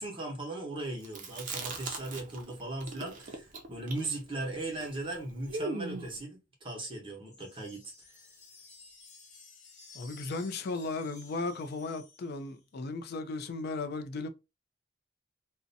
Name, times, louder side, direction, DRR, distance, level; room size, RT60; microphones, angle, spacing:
voice 1, 0.0-7.9, right 2 dB, 30° right, 0.9 m, -38 dB
Chewing mastication, 1.0-2.5 2.8-6.2, right 3 dB, 45° right, 0.5 m, -39 dB
sound 1, 7.3-12.7, left 4 dB, 40° left, 0.8 m, -55 dB
voice 2, 9.9-14.3, left 3 dB, 55° left, 0.4 m, -36 dB
2.5 x 2.1 x 2.6 m
head